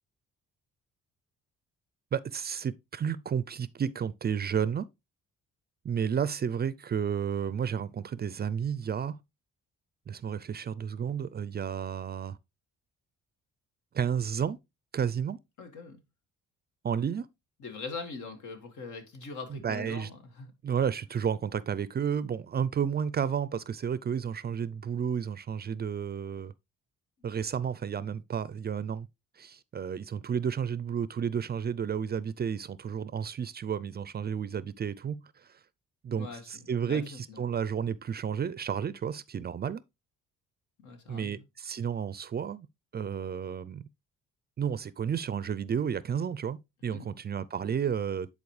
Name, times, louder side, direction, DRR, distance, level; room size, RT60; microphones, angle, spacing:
voice 1, 2.1-4.9 5.8-9.2 10.1-12.4 13.9-14.6 14.9-15.4 16.8-17.3 19.5-20.1 20.6-26.5 27.2-29.1 29.4-35.6 36.0-39.8 41.1-42.7 42.9-43.9 44.6-48.3, right 7 dB, 35° right, 0.4 m, -32 dB
voice 2, 15.6-16.0 17.6-20.5 36.1-37.4 40.8-41.4 46.9-47.1, left 4 dB, 75° left, 1.9 m, -42 dB
9.6 x 4.2 x 3.2 m
cardioid pair, 90°, 30 cm